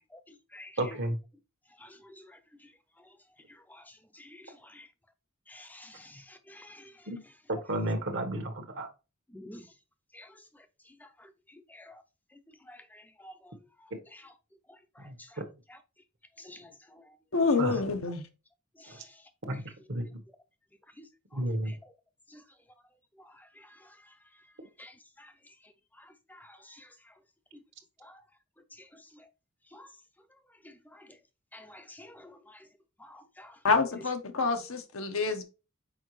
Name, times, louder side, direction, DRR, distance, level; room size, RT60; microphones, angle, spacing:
voice 1, 0.8-1.2 7.1-7.2 7.5-8.9 13.9-14.0 15.0-15.2 17.6-17.8 18.9-19.0 19.5-19.6 19.9-20.0 21.3-21.7, right 1 dB, 60° right, 1.3 m, -32 dB
voice 2, 1.8-2.1 3.7-3.8 4.1-4.9 5.5-6.9 9.3-9.6 10.1-10.3 11.0-11.1 11.7-12.0 12.7-13.5 14.1-14.2 15.0-15.1 16.4-16.7 18.8-19.1 21.0-21.1 22.3-22.4 23.6-23.7 24.8-25.3 26.3-26.9 28.0-28.2 29.7-29.9 30.6-31.1 31.5-32.6 33.0-33.6, left 1 dB, 10° left, 0.6 m, -50 dB
voice 3, 17.3-18.3 33.6-35.4, left 4 dB, 75° left, 1.0 m, -27 dB
6.3 x 4.7 x 3.2 m
head